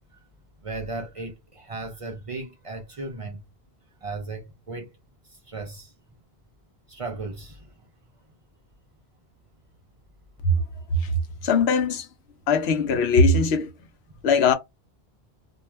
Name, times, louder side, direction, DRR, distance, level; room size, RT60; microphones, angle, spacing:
voice 1, 0.6-3.4 4.0-4.9 5.3-5.9 6.9-7.7 14.2-14.3, right 3 dB, 40° right, 0.5 m, -36 dB
voice 2, 11.4-12.1 12.5-13.7 14.2-14.5, left 3 dB, 90° left, 0.8 m, -20 dB
2.3 x 2.2 x 3.0 m
omnidirectional pair, 1.0 m